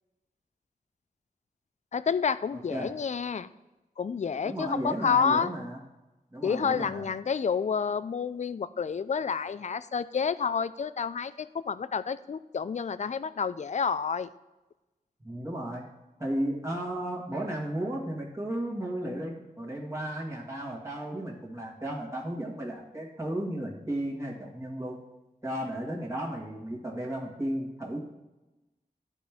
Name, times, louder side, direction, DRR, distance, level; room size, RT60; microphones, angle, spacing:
voice 1, 1.9-3.5 4.0-5.5 6.4-14.3, left 6 dB, 50° left, 15 dB, 0.4 m, -29 dB
voice 2, 2.5-2.9 4.4-5.8 6.3-7.1 15.2-15.9 16.2-25.0 25.4-28.0, right 1 dB, 20° right, -4 dB, 1.7 m, -34 dB
12.5 x 4.3 x 3.5 m, 1.0 s
wide cardioid pair, 60°, 16 cm